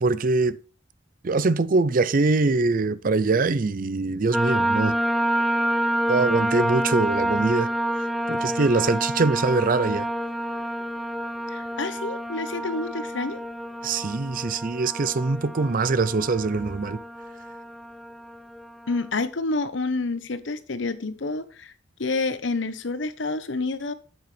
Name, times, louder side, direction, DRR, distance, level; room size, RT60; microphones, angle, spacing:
voice 1, 0.0-0.6 1.2-5.0 6.1-7.7 8.3-10.1 13.8-17.0, right 3 dB, 45° right, 0.5 m, -23 dB
sound 1, 4.3-19.0, right 1 dB, ahead, 0.6 m, -28 dB
voice 2, 11.5-13.4 18.9-21.7 22.0-23.9, left 3 dB, 80° left, 0.9 m, -28 dB
9.0 x 8.0 x 3.3 m
head